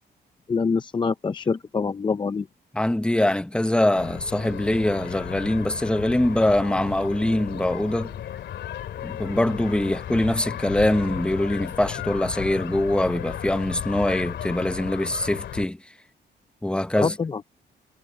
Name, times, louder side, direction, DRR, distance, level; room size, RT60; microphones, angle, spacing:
voice 1, 0.5-2.5 17.0-17.4, left 5 dB, 25° left, 0.6 m, -25 dB
voice 2, 2.7-8.1 9.0-15.8 16.6-17.1, left 1 dB, 5° left, 1.1 m, -23 dB
sound 1, 3.9-15.7, left 10 dB, 85° left, 2.5 m, -34 dB
cardioid pair, 125°, 18 cm